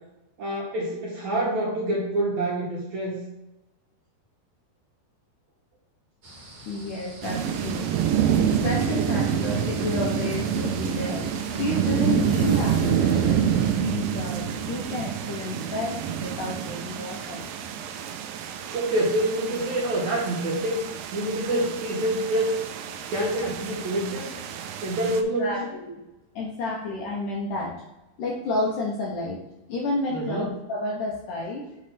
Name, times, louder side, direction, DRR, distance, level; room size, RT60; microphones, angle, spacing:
voice 1, 0.4-3.2 18.7-20.8 21.1-22.6 23.1-24.3 24.8-25.6 30.1-30.5, right 1 dB, 60° right, -4 dB, 2.1 m, -26 dB
sound 1, 6.2-13.7, left 2 dB, 45° right, 1.6 m, -40 dB
voice 2, 6.7-8.1 8.5-11.3 11.6-13.4 13.7-17.4 18.5-18.6 25.4-25.9 26.4-27.8 28.2-29.4 29.7-31.7, left 2 dB, 70° left, -2 dB, 2.0 m, -30 dB
sound 2, 7.2-25.2, right 8 dB, 85° right, 2.0 m, -27 dB
7.5 x 3.3 x 5.7 m, 0.95 s
omnidirectional pair, 4.7 m